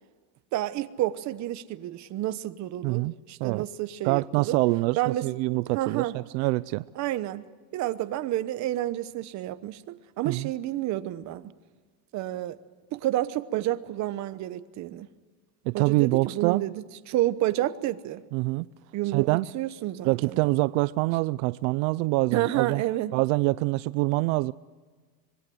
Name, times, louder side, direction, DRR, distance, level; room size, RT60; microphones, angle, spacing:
voice 1, 0.5-3.0 3.3-4.6 4.9-5.3 5.7-6.1 7.0-7.4 7.7-11.5 12.1-12.6 12.9-15.1 15.7-18.2 18.9-20.4 22.3-23.1, right 14 dB, 35° right, 1.0 m, -30 dB
voice 2, 2.8-3.1 3.4-3.6 4.0-6.8 10.2-10.5 15.7-16.7 18.3-18.7 19.1-19.5 20.0-22.8 23.1-24.5, right 22 dB, 75° right, 0.6 m, -25 dB
25.0 x 22.0 x 7.8 m
cardioid pair, 175°, 46 cm